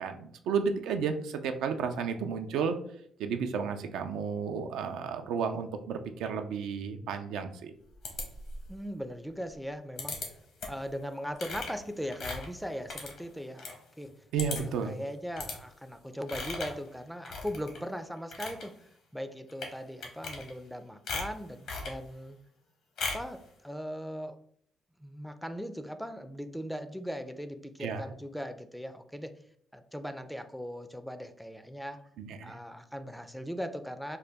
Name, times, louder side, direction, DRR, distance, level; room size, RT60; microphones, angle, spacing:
voice 1, 0.0-2.8 3.2-7.7 14.3-14.9 27.8-28.0 32.2-32.6, right 6 dB, 90° right, 6 dB, 0.4 m, -32 dB
sound 1, 8.0-8.7 10.0-10.3 10.6-10.9 11.4-13.8 14.1-14.2 14.4-14.8 15.4-15.6 16.3-16.8 17.2-17.8 18.2-18.6 19.5-19.7 20.0-20.7 21.1-22.0 23.0-23.3, left 3 dB, 75° left, 1.0 m, -38 dB
voice 2, 8.7-10.2 10.7-14.1 14.6-18.7 19.1-22.4 23.1-24.4 25.0-29.4 29.7-32.0 32.4-34.2, equal, ahead, 9 dB, 0.3 m, -39 dB
3.8 x 2.2 x 3.3 m, 0.65 s
cardioid pair, 90°, 0 cm